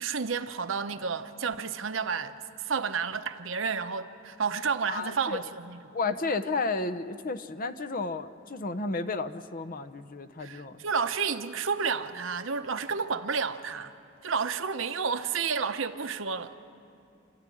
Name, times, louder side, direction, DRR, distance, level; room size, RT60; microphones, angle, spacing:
voice 1, 0.0-2.3 2.6-5.8 10.4-13.9 14.2-16.5, right 5 dB, 70° right, 0.9 m, -31 dB
voice 2, 4.9-5.4 5.9-10.8, left 3 dB, 45° left, 0.7 m, -32 dB
28.0 x 13.5 x 10.0 m
head